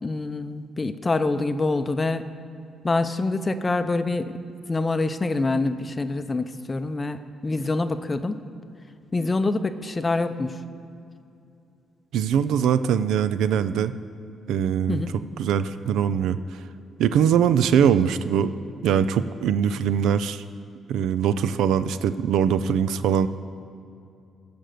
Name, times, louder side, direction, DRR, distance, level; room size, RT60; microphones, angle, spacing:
voice 1, 0.0-2.2 2.8-4.3 4.7-8.4 9.1-10.6 14.9-15.1, left 3 dB, 25° left, 10 dB, 0.6 m, -25 dB
voice 2, 12.1-13.9 14.5-15.0 15.4-16.4 17.0-18.5 18.8-20.4 20.9-23.3, right 8 dB, 80° right, 13 dB, 0.4 m, -22 dB
15.5 x 5.2 x 7.8 m, 2.5 s
cardioid pair, 90°, 0 cm